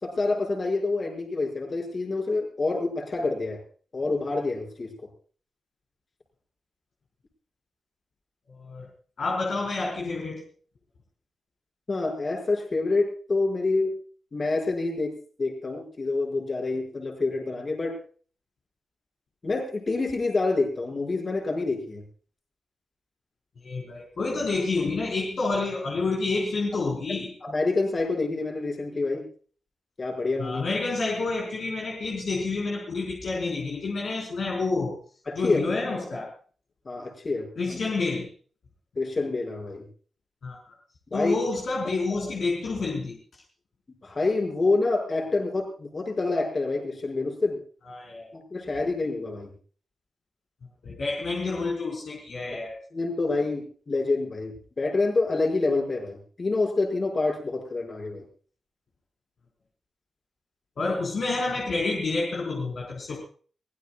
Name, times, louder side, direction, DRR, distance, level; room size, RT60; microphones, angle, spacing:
voice 1, 0.0-3.6 3.9-4.9 11.9-13.9 14.3-17.9 19.4-22.0 27.1-29.2 30.0-30.6 35.3-35.6 36.8-37.8 39.0-39.8 41.1-41.4 42.1-42.2 44.0-47.6 48.3-49.5 52.9-58.2, left 3 dB, 40° left, 2 dB, 6.1 m, -27 dB
voice 2, 8.5-8.9 9.2-10.4 23.6-27.3 30.4-35.0 35.3-36.3 37.6-38.3 40.4-40.6 41.1-43.2 47.8-48.3 50.8-52.8 60.8-63.2, left 3 dB, 60° left, -2 dB, 4.5 m, -29 dB
24.0 x 17.0 x 2.4 m, 0.42 s
cardioid pair, 100°, 0 cm